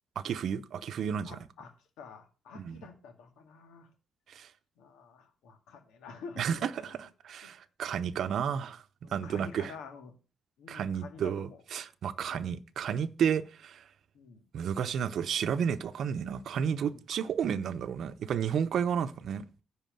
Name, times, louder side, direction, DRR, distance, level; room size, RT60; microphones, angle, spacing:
voice 1, 0.2-1.4 2.5-2.8 4.3-4.5 6.4-7.0 7.2-8.8 9.1-9.7 10.7-13.8 14.5-19.5, right 8 dB, 65° right, 0.8 m, -32 dB
voice 2, 1.3-3.9 4.8-7.1 7.4-7.5 9.0-10.2 10.6-11.6 12.3-12.6 14.1-14.4 16.7-17.0, left 5 dB, 85° left, 2.0 m, -49 dB
10.0 x 4.9 x 7.8 m
cardioid pair, 90°, 0 cm